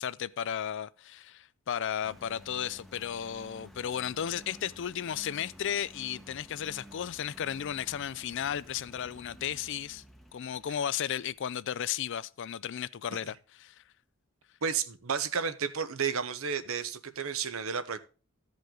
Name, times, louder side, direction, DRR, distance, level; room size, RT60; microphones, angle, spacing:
voice 1, 0.0-10.0 10.3-13.8, left 9 dB, 55° left, 0.4 m, -34 dB
Engine, 2.0-11.5, equal, ahead, 0.9 m, -53 dB
voice 2, 14.6-18.0, right 6 dB, 70° right, 0.9 m, -32 dB
14.5 x 5.3 x 3.7 m
head